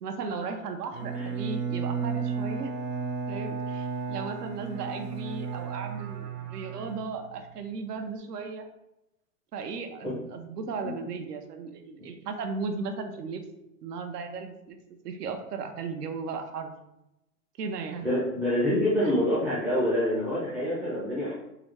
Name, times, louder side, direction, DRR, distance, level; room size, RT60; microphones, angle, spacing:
voice 1, 0.0-2.7 3.3-6.2 6.5-8.7 9.5-13.4 13.8-14.8 15.0-16.7 17.6-18.1, right 4 dB, 80° right, 6 dB, 0.9 m, -36 dB
Bowed string instrument, 0.9-7.5, right 5 dB, 35° right, 0.8 m, -34 dB
voice 2, 18.0-21.3, equal, ahead, -9 dB, 0.4 m, -26 dB
3.9 x 3.6 x 3.3 m, 0.89 s
hypercardioid pair, 150°, 46 cm